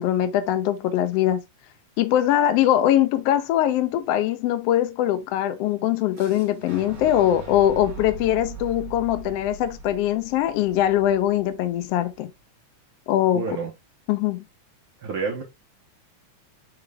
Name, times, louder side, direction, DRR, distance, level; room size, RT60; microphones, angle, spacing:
voice 1, 0.0-1.4 2.0-12.3 13.1-13.4 14.1-14.4, left 12 dB, 85° left, 1.4 m, -22 dB
Fire / Explosion, 6.1-12.0, right 5 dB, 45° right, 1.7 m, -40 dB
voice 2, 13.3-13.7 15.0-15.4, right 5 dB, 75° right, 1.2 m, -28 dB
4.9 x 3.2 x 3.3 m
omnidirectional pair, 3.5 m